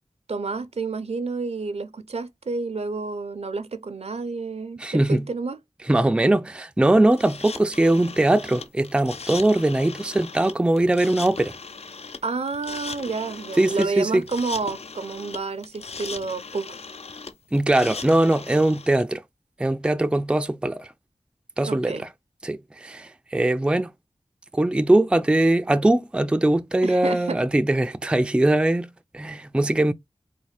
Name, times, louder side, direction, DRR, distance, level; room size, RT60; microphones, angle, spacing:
voice 1, 0.3-5.6 12.2-16.8 21.6-22.1 26.8-27.4, right 4 dB, 70° right, 0.5 m, -30 dB
voice 2, 4.8-5.3 5.9-11.5 13.6-14.2 17.5-19.2 19.6-20.9 21.6-22.1 22.4-23.9 24.5-28.9 29.1-29.9, right 1 dB, 10° right, 0.3 m, -21 dB
sound 1, 7.1-19.0, left 4 dB, 70° left, 0.4 m, -38 dB
4.1 x 2.1 x 3.1 m
wide cardioid pair, 40°, 11 cm